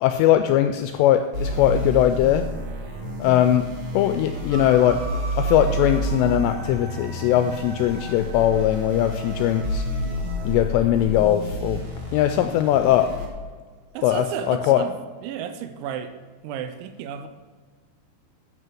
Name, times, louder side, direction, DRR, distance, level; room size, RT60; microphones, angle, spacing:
voice 1, 0.0-2.5 3.2-3.7 3.9-5.0 5.4-9.8 10.4-11.8 12.1-13.1 14.0-14.8, left 11 dB, 85° left, 8 dB, 2.5 m, -20 dB
sound 1, 1.3-13.2, equal, 50° right, 1.6 m, -30 dB
sound 2, 4.5-10.5, right 3 dB, 5° right, 1.9 m, -41 dB
voice 2, 13.9-15.0 15.2-16.1 16.4-17.3, right 9 dB, 80° right, 9 dB, 3.1 m, -32 dB
11.0 x 5.7 x 7.6 m, 1.5 s
omnidirectional pair, 5.4 m